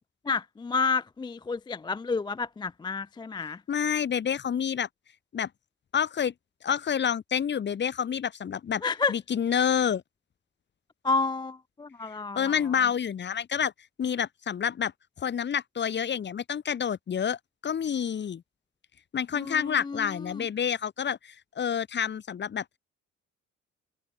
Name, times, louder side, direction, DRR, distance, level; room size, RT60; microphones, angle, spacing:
voice 1, 0.3-3.6 8.8-9.1 11.0-12.6 19.4-20.4, left 4 dB, 15° left, 0.3 m, -30 dB
voice 2, 3.7-4.9 5.3-5.5 5.9-6.3 6.6-8.8 9.1-10.0 12.4-13.7 14.0-14.9 15.2-17.4 17.6-18.4 19.1-22.6, left 8 dB, 35° left, 0.7 m, -28 dB
cardioid pair, 90°, 30 cm